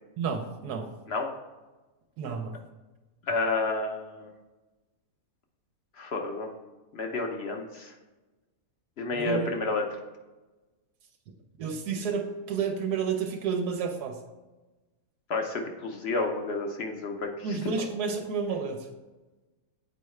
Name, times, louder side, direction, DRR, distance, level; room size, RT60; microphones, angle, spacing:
voice 1, 0.2-0.9 2.2-2.6 9.1-9.5 11.6-14.2 17.4-18.9, right 6 dB, 85° right, 3 dB, 1.2 m, -30 dB
voice 2, 3.3-4.3 6.0-6.5 6.9-7.9 9.0-9.8 15.3-17.6, left 3 dB, 50° left, 3 dB, 0.9 m, -30 dB
7.8 x 4.6 x 3.2 m, 1.2 s
omnidirectional pair, 1.6 m